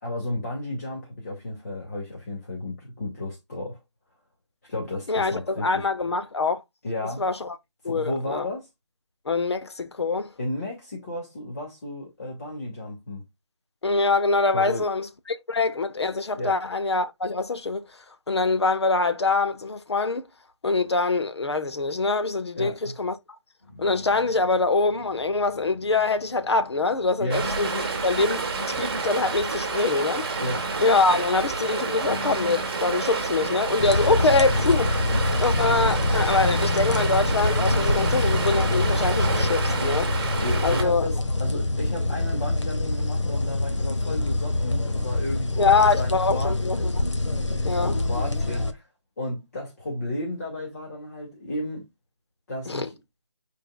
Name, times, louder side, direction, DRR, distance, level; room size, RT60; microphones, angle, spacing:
voice 1, 0.0-3.8 4.7-5.9 6.8-7.2 7.8-8.7 10.4-13.2 14.5-14.8 16.4-16.6 22.6-22.9 27.2-27.4 30.4-30.6 40.4-46.9 47.7-48.9 49.2-51.8 52.5-53.0, left 1 dB, 35° left, 2.5 m, -33 dB
voice 2, 5.1-6.6 7.2-7.6 7.8-8.5 9.3-10.3 13.8-17.8 18.3-20.2 20.6-23.2 23.8-30.3 30.8-40.1 40.6-41.1 45.6-47.0 47.6-48.0 52.7-52.9, left 3 dB, 65° left, 1.0 m, -24 dB
sound 1, 23.6-42.0, left 1 dB, 20° left, 4.1 m, -44 dB
Stream, 27.3-40.8, right 4 dB, 20° right, 2.1 m, -29 dB
sound 2, 33.8-48.7, left 2 dB, 85° left, 1.4 m, -25 dB
9.1 x 4.7 x 2.4 m
figure-of-eight pair, 170°, 15 cm